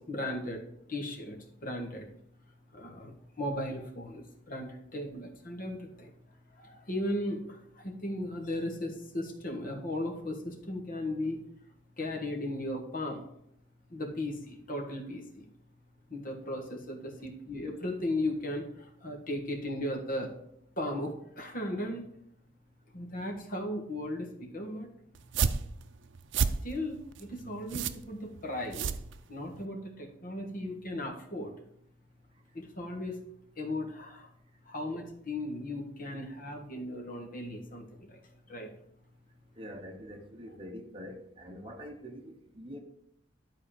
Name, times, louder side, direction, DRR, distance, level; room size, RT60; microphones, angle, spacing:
voice 1, 0.1-0.6 0.9-2.1 2.7-6.1 6.6-7.6 7.8-11.4 12.0-13.2 13.9-15.4 16.1-18.6 19.0-20.3 20.8-22.0 22.9-24.9 26.6-28.8 29.3-31.5 32.5-33.2 33.6-34.3 34.7-38.2 38.5-38.7, left 1 dB, 45° left, 1.6 m, -36 dB
sound 1, 25.2-29.7, right 5 dB, 70° right, 0.5 m, -32 dB
voice 2, 39.6-42.8, equal, 30° right, 1.0 m, -45 dB
11.5 x 4.2 x 5.1 m
head